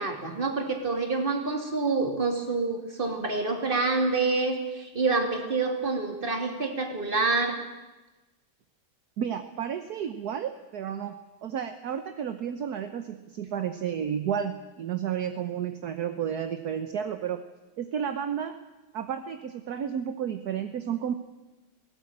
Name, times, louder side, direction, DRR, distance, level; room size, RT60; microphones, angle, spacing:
voice 1, 0.0-7.6, right 3 dB, 25° right, 4 dB, 2.7 m, -27 dB
voice 2, 9.2-17.4 17.8-18.6 18.9-21.1, right 8 dB, 55° right, 9 dB, 1.2 m, -32 dB
17.5 x 17.5 x 8.7 m, 1.1 s
omnidirectional pair, 2.4 m